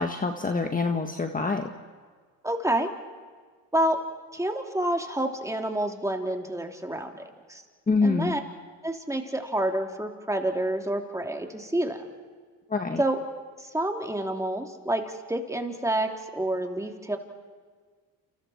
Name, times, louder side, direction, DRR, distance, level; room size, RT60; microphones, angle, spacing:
voice 1, 0.0-1.7 7.9-8.3 12.7-13.0, left 4 dB, 20° left, 5 dB, 1.6 m, -26 dB
voice 2, 2.4-2.9 3.7-4.0 4.3-7.2 7.5-7.6 8.0-8.4 8.8-12.0 13.0-13.2 13.6-17.2, right 1 dB, 10° right, 3 dB, 3.1 m, -28 dB
29.5 x 29.0 x 4.4 m, 1.5 s
supercardioid pair, 85°, 40 cm